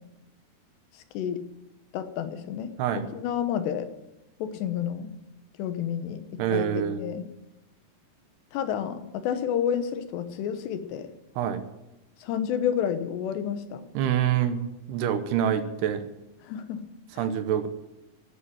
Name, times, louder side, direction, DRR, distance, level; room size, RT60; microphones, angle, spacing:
voice 1, 1.9-2.7 3.1-3.9 4.4-5.1 5.6-7.2 8.5-11.1 12.2-13.9 16.4-16.8 17.1-17.2, left 9 dB, 85° left, 9 dB, 3.2 m, -30 dB
voice 2, 6.4-7.1 11.4-11.6 13.9-14.6 14.9-16.0 17.2-17.7, right 9 dB, 75° right, 10 dB, 3.0 m, -26 dB
11.5 x 9.9 x 9.8 m, 0.93 s
omnidirectional pair, 4.8 m